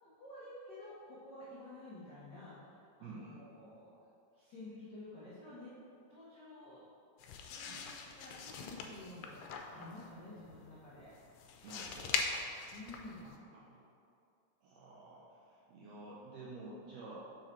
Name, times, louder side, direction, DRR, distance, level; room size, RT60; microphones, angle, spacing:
voice 1, 0.0-4.0 4.3-5.7 6.1-6.8 7.2-7.8 8.1-11.1 12.7-13.3, left 2 dB, 70° left, -10 dB, 1.0 m, -51 dB
voice 2, 3.0-3.5 7.6-7.8 11.6-12.2 13.2-13.8 14.6-17.3, right 2 dB, 80° right, -6 dB, 1.5 m, -51 dB
sound 1, 7.2-13.4, left 5 dB, 90° left, 2.2 m, -42 dB
5.7 x 5.1 x 4.3 m, 2.5 s
omnidirectional pair, 3.8 m